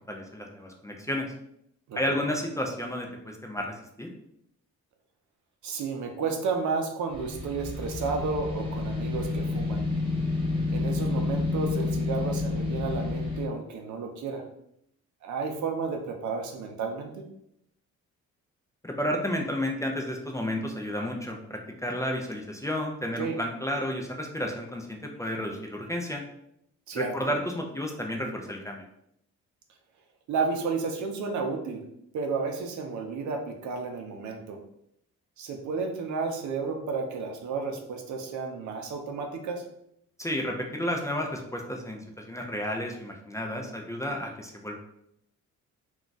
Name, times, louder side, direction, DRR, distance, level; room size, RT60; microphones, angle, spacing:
voice 1, 0.1-1.3 1.9-4.1 18.8-26.2 27.0-28.8 40.2-44.8, left 1 dB, 10° left, 1 dB, 0.4 m, -32 dB
voice 2, 1.9-2.2 5.6-9.9 10.7-14.4 15.2-17.2 23.2-23.4 26.9-27.1 30.3-31.8 32.1-34.6 35.4-39.6, right 4 dB, 70° right, 3 dB, 0.6 m, -32 dB
sound 1, 7.1-13.5, left 3 dB, 15° right, 1.1 m, -29 dB
2.3 x 2.3 x 3.9 m, 0.76 s
cardioid pair, 90°, 30 cm